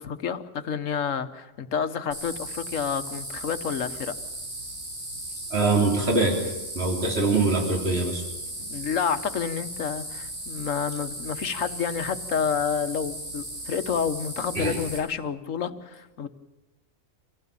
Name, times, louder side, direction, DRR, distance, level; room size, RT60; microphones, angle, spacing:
voice 1, 0.0-4.1 8.7-16.3, left 7 dB, 80° left, 10 dB, 1.5 m, -29 dB
sound 1, 2.1-15.0, right 1 dB, 85° right, 5.9 m, -36 dB
voice 2, 5.5-6.4 6.8-8.2 14.6-14.7, right 3 dB, 50° right, 0 dB, 3.9 m, -23 dB
26.0 x 16.5 x 8.7 m, 1.1 s
omnidirectional pair, 1.3 m